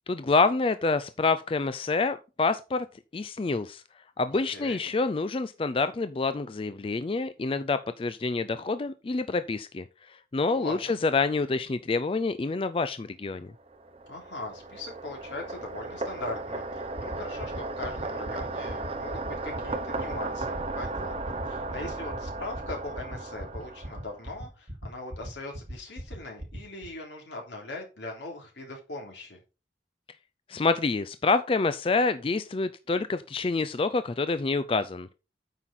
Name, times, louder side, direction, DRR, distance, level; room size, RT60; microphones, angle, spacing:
voice 1, 0.1-2.9 3.1-3.8 4.2-13.5 30.5-35.1, left 3 dB, 30° left, 0.4 m, -27 dB
voice 2, 4.3-4.8 10.5-10.9 14.1-29.4, left 2 dB, 80° left, 3.2 m, -40 dB
sound 1, 13.6-24.3, right 2 dB, 35° right, 0.9 m, -35 dB
sound 2, 17.0-26.9, equal, 60° right, 2.4 m, -38 dB
9.0 x 5.7 x 4.2 m
head